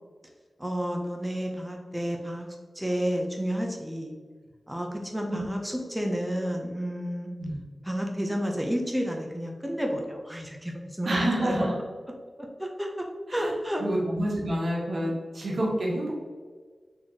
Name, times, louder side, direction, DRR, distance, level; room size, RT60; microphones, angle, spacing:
voice 1, 0.6-2.5 2.7-4.1 4.7-7.3 7.8-11.7 12.4-13.8 15.0-15.1, equal, 5° right, 1 dB, 0.6 m, -31 dB
voice 2, 11.0-11.7 13.3-13.5 13.8-16.2, right 1 dB, 75° right, -3 dB, 1.2 m, -28 dB
4.2 x 3.0 x 3.8 m, 1.5 s
cardioid pair, 60°, 0 cm